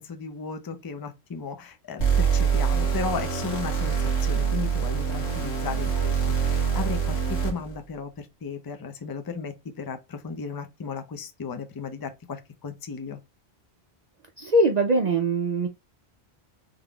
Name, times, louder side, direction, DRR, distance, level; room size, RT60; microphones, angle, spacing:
voice 1, 0.0-13.2, left 5 dB, 30° left, 0.4 m, -35 dB
sound 1, 2.0-7.7, right 6 dB, 80° left, 1.8 m, -25 dB
voice 2, 14.4-15.7, right 1 dB, 50° right, 0.5 m, -22 dB
3.6 x 3.5 x 2.3 m
omnidirectional pair, 1.1 m